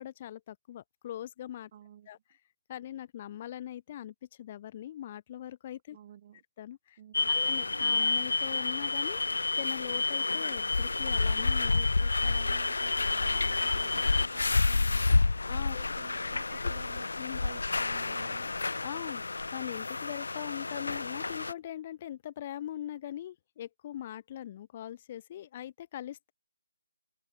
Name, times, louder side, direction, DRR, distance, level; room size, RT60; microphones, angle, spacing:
voice 1, 0.0-1.7 2.1-2.2 2.7-6.0 6.6-7.0 7.3-9.2 9.6-11.7 15.5-15.8 16.5-16.7 17.2-17.4 18.8-19.2 19.5-26.3, left 11 dB, 20° left, 1.6 m, -41 dB
voice 2, 1.7-2.1 5.9-6.4 7.0-7.5 11.7-15.4 15.8-17.1 17.4-18.5, right 10 dB, 20° right, 2.6 m, -52 dB
sound 1, 7.1-21.5, left 3 dB, 75° left, 0.6 m, -29 dB
open air
hypercardioid pair, 180°, 0 cm